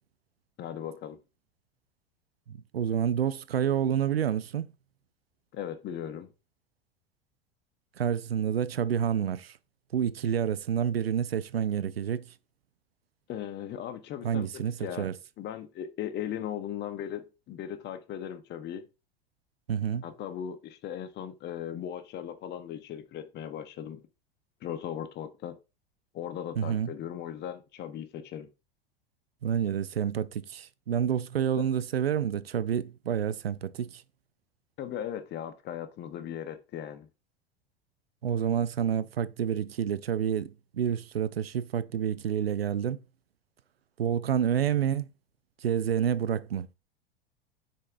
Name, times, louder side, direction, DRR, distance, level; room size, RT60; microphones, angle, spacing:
voice 1, 0.6-1.2 5.5-6.3 13.3-14.5 14.8-15.1 15.4-18.8 20.0-24.0 24.6-25.6 26.1-28.5 34.8-37.1, left 10 dB, 35° left, 1.0 m, -38 dB
voice 2, 2.5-4.7 8.0-9.6 9.9-12.2 14.2-15.1 19.7-20.0 26.6-26.9 29.4-34.0 38.2-43.0 44.0-45.1 45.6-46.7, right 8 dB, 85° right, 0.5 m, -28 dB
6.5 x 5.7 x 2.5 m
figure-of-eight pair, 85°, 30 cm